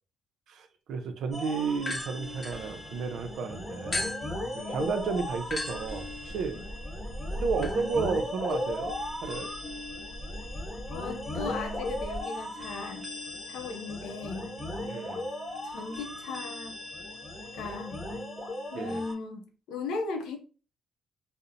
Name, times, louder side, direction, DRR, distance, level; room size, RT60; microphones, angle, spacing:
voice 1, 0.5-4.1 4.5-6.6 7.4-8.9 9.2-9.5 14.9-15.2 18.7-19.0, right 5 dB, 75° right, 0.4 m, -32 dB
sound 1, 1.3-19.1, left 1 dB, 15° left, 1.0 m, -37 dB
sound 2, 1.8-3.3 3.9-12.2, left 1 dB, 30° left, 0.5 m, -39 dB
voice 2, 4.5-5.1 6.5-6.6 10.9-13.0 13.5-14.5 15.6-16.8 17.6-18.0 18.7-20.4, left 4 dB, 90° left, 0.5 m, -37 dB
2.7 x 2.0 x 2.5 m
cardioid pair, 90°, 0 cm